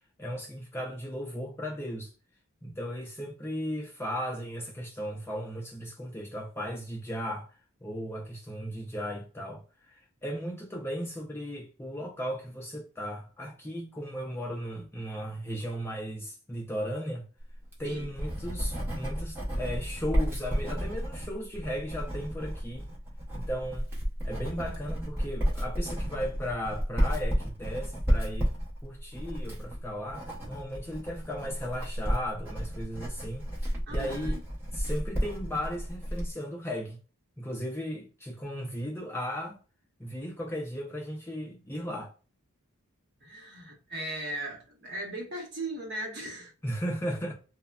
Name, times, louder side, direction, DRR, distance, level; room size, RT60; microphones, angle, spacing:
voice 1, 0.2-2.1 2.6-7.5 7.8-9.6 9.9-17.2 17.8-22.8 23.3-23.9 24.2-28.5 28.8-33.4 33.9-34.4 34.7-37.0 37.4-39.6 40.0-42.1 46.6-47.3, equal, 10° left, 0.4 m, -36 dB
Writing, 17.5-36.3, equal, 10° right, 0.7 m, -32 dB
voice 2, 33.9-34.4 43.2-46.5, right 1 dB, 50° right, 0.9 m, -38 dB
3.2 x 2.1 x 2.2 m
head